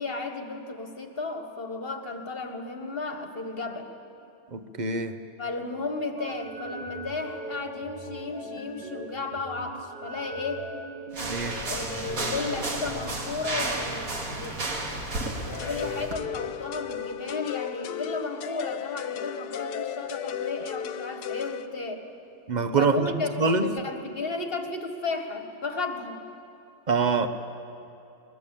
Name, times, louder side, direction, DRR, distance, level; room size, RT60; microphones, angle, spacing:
voice 1, 0.0-3.9 5.4-10.7 11.7-14.6 15.4-22.0 22.8-26.2, left 3 dB, 35° left, 5 dB, 1.7 m, -34 dB
voice 2, 4.5-5.2 11.3-11.6 22.5-23.7 26.9-27.3, right 4 dB, 35° right, 9 dB, 0.8 m, -25 dB
sound 1, 6.2-13.2, right 1 dB, 80° right, 2.6 m, -40 dB
sound 2, 11.1-16.2, right 2 dB, 55° right, 2.6 m, -32 dB
sound 3, 15.5-21.7, left 10 dB, 70° left, 1.3 m, -35 dB
22.0 x 20.5 x 8.4 m, 2.7 s
omnidirectional pair, 1.8 m